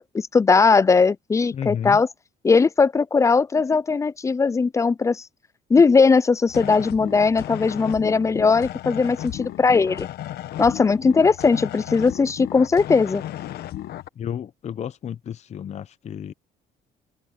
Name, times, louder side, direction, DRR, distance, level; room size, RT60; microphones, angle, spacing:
voice 1, 0.0-2.1 2.4-5.2 5.7-10.1 10.6-13.2, left 4 dB, 20° left, 0.4 m, -19 dB
voice 2, 1.5-2.0 14.2-16.3, left 9 dB, 40° left, 0.8 m, -32 dB
sound 1, 6.5-14.1, left 13 dB, 70° left, 1.1 m, -34 dB
cardioid pair, 110°, 17 cm